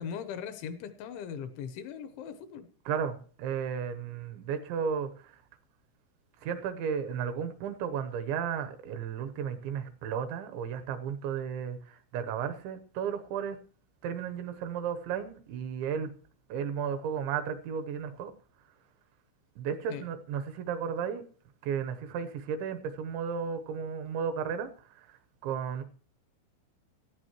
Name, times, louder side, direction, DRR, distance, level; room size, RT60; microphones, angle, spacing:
voice 1, 0.0-2.7 19.9-20.1, left 7 dB, 75° left, 10 dB, 3.2 m, -39 dB
voice 2, 2.9-5.3 6.4-13.6 14.0-16.1 16.5-18.3 19.6-21.2 21.6-24.7 25.0-25.1 25.4-25.8, right 7 dB, 75° right, 9 dB, 3.1 m, -34 dB
18.0 x 14.5 x 3.1 m, 0.43 s
omnidirectional pair, 5.7 m